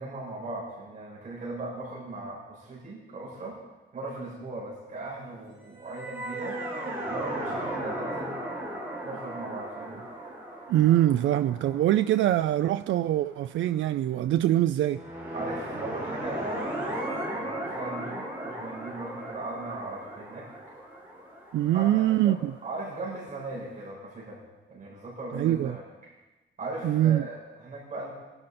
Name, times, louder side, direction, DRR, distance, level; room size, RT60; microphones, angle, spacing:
voice 1, 0.0-3.6 3.9-6.6 7.1-8.4 9.0-10.1 15.3-20.5 21.7-22.3 22.6-24.4 24.7-25.8 26.6-28.1, right 2 dB, 40° right, 5.7 m, -38 dB
sound 1, 5.8-13.0 14.9-22.7, right 1 dB, 10° right, 5.4 m, -36 dB
voice 2, 10.7-15.0 21.5-22.5 25.3-25.8 26.8-27.2, right 13 dB, 80° right, 0.4 m, -23 dB
24.0 x 12.0 x 4.3 m
wide cardioid pair, 160°, 19 cm